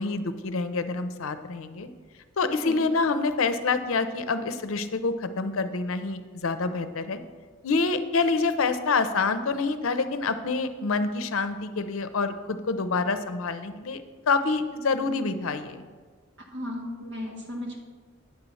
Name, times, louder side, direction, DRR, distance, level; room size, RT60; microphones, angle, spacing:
voice 1, 0.0-1.9 2.4-7.2 7.6-15.9, left 4 dB, 85° left, 10 dB, 0.6 m, -27 dB
voice 2, 2.4-2.8 16.5-17.8, left 1 dB, 60° right, 0 dB, 1.5 m, -35 dB
9.1 x 4.1 x 6.9 m, 1.5 s
head